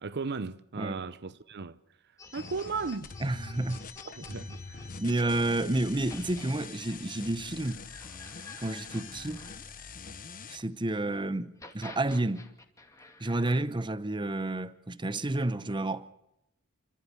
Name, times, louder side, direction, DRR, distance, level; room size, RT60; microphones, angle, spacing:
voice 1, 0.0-1.8 2.3-3.1 4.0-4.9 5.6-5.7, right 4 dB, 50° right, 0.7 m, -36 dB
sound 1, 2.2-10.7 11.4-13.6, left 3 dB, 15° left, 2.4 m, -51 dB
sound 2, 2.3-10.6, left 4 dB, 40° left, 1.1 m, -45 dB
voice 2, 3.2-3.8 5.0-7.8 8.6-9.4 10.5-12.4 13.2-16.0, right 2 dB, 20° right, 0.9 m, -30 dB
29.0 x 13.5 x 8.3 m
head